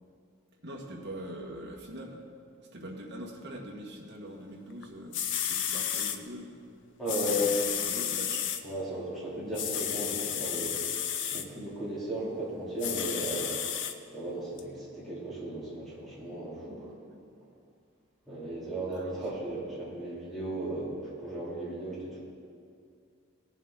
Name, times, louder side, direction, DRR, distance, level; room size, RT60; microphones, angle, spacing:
voice 1, 0.6-2.2 2.7-6.5 7.1-8.5 17.0-17.2 18.9-19.2, right 1 dB, 55° right, -3 dB, 1.9 m, -43 dB
sound 1, 4.8-4.9 5.1-6.2 7.1-8.6 9.5-11.4 12.8-13.9 14.6-14.7, left 9 dB, 60° left, 0.6 m, -32 dB
voice 2, 7.0-7.5 8.6-10.8 11.3-16.9 18.3-22.2, right 1 dB, ahead, -9 dB, 3.3 m, -36 dB
18.0 x 7.2 x 4.1 m, 2.3 s
head